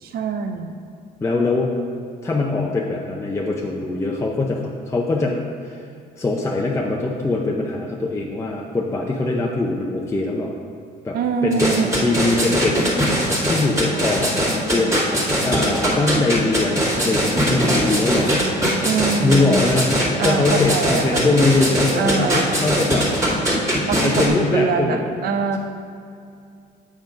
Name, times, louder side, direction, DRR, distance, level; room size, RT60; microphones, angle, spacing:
voice 1, 0.0-0.7 11.1-11.9 18.8-19.6 20.2-21.3 21.9-22.5 23.9-25.6, right 5 dB, 65° right, 6 dB, 0.8 m, -23 dB
voice 2, 1.2-1.7 2.2-5.4 5.6-5.9 6.2-10.5 11.0-11.2 11.4-12.8 13.5-18.3 19.0-23.1 24.0-25.1, left 3 dB, 15° left, -1 dB, 0.6 m, -22 dB
sound 1, 11.5-24.3, equal, 15° right, 2.0 m, -20 dB
7.4 x 5.6 x 5.1 m, 2.4 s
cardioid pair, 110°, 17 cm